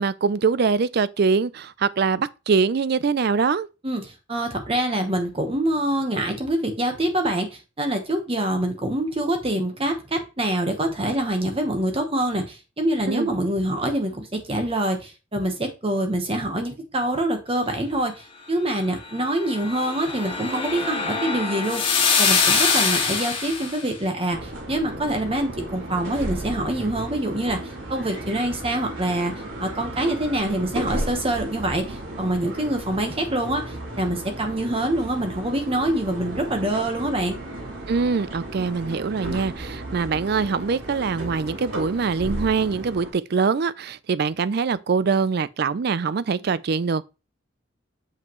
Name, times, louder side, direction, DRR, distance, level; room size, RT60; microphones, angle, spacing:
voice 1, 0.0-3.7 13.1-13.3 37.9-47.0, right 5 dB, 55° right, 0.4 m, -23 dB
voice 2, 3.8-18.1 18.5-21.9 22.2-29.3 29.6-37.4, right 1 dB, 30° right, 1.1 m, -25 dB
sound 1, 19.2-23.8, left 5 dB, 25° left, 1.5 m, -23 dB
sound 2, 24.3-43.1, right 1 dB, 85° right, 3.3 m, -34 dB
7.3 x 5.5 x 3.0 m
head